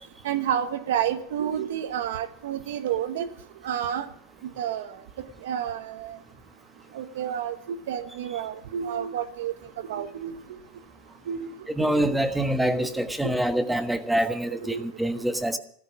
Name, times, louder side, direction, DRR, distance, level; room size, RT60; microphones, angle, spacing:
voice 1, 0.2-3.3 3.6-4.1 4.6-4.9 5.4-6.2 6.9-9.5 9.9-10.6 11.3-11.5 11.8-12.0 13.2-13.3 14.6-14.9, right 9 dB, 80° right, 10 dB, 1.2 m, -30 dB
voice 2, 11.7-15.6, right 1 dB, 5° right, 8 dB, 1.3 m, -25 dB
14.0 x 13.0 x 6.1 m, 0.64 s
supercardioid pair, 110°, 0 cm